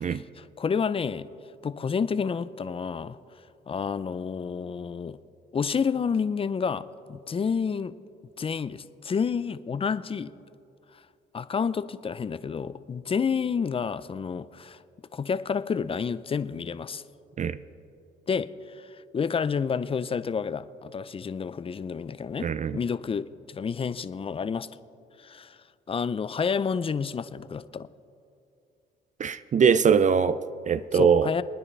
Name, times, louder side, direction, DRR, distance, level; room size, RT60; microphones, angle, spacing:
voice 1, 0.1-1.3 1.6-3.2 3.7-5.2 5.5-7.9 8.4-10.3 11.3-14.8 15.1-17.0 18.3-24.7 25.2-25.6 25.9-27.9 30.9-31.4, left 6 dB, 30° left, 0.4 m, -29 dB
voice 2, 22.4-22.8 29.2-31.4, right 6 dB, 40° right, 0.4 m, -22 dB
24.5 x 9.9 x 3.3 m
cardioid pair, 90°, 20 cm